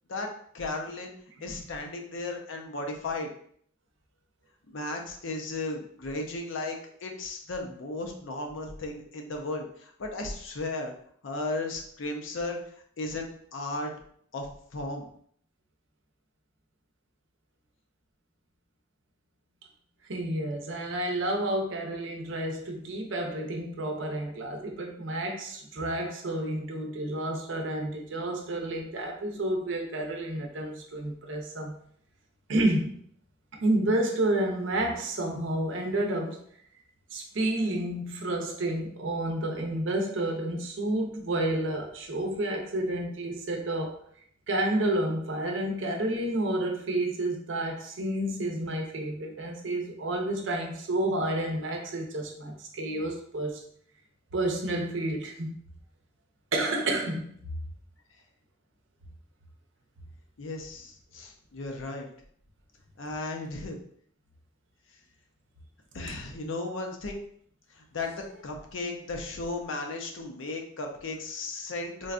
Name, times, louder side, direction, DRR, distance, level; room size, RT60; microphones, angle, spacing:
voice 1, 0.1-1.1 1.4-3.3 4.7-10.9 11.2-12.6 13.0-13.9 14.3-14.5 14.7-15.1 60.4-62.1 63.0-63.8 65.9-67.2 67.7-72.1, left 2 dB, 75° left, 3 dB, 0.5 m, -35 dB
voice 2, 20.1-31.8 32.5-33.0 33.6-36.4 37.1-43.9 44.5-53.6 54.3-55.5 56.5-57.4, right 1 dB, 70° right, 2 dB, 0.6 m, -30 dB
3.8 x 2.2 x 2.4 m, 0.63 s
head